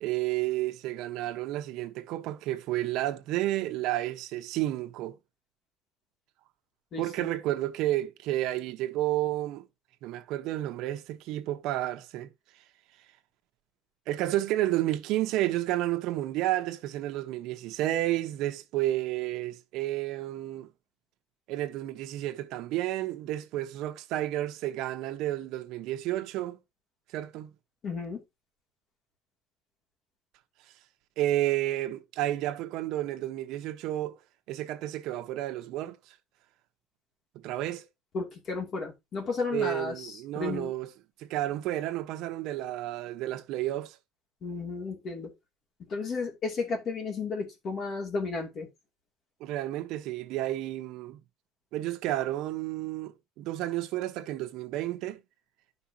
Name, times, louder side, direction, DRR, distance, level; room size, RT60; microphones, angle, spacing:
voice 1, 0.0-5.2 7.0-9.6 10.0-12.3 14.1-20.7 21.5-26.6 27.1-27.5 31.2-34.2 34.5-36.1 37.3-37.8 39.5-40.9 41.2-44.0 49.4-51.2 51.7-55.2, right 14 dB, 60° right, 1.0 m, -31 dB
voice 2, 6.9-7.3 27.8-28.2 38.1-40.7 44.4-45.3 45.9-48.7, left 4 dB, 35° left, 2.6 m, -33 dB
11.5 x 5.5 x 2.8 m
cardioid pair, 165°, 0 cm